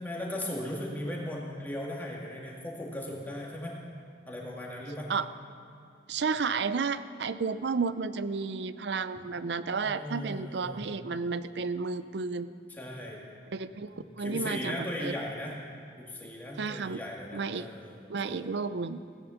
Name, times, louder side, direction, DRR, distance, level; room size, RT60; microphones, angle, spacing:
voice 1, 0.0-3.8 4.3-5.1 9.8-10.9 12.7-13.2 13.9-15.6 16.0-18.5, left 1 dB, 10° left, -3 dB, 2.2 m, -38 dB
voice 2, 6.1-12.5 13.5-15.1 16.6-17.0 17.3-17.7 18.1-19.0, right 4 dB, 65° right, 13 dB, 0.5 m, -32 dB
16.5 x 10.5 x 7.1 m, 2.4 s
head